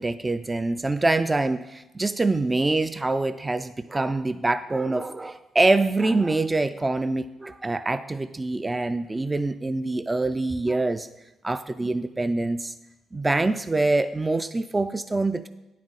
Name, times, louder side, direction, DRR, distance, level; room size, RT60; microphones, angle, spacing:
voice 1, 0.0-11.1 11.4-12.7 13.1-15.5, right 2 dB, 20° right, 11 dB, 0.3 m, -25 dB
9.6 x 7.3 x 3.9 m, 0.98 s
cardioid pair, 90°, 0 cm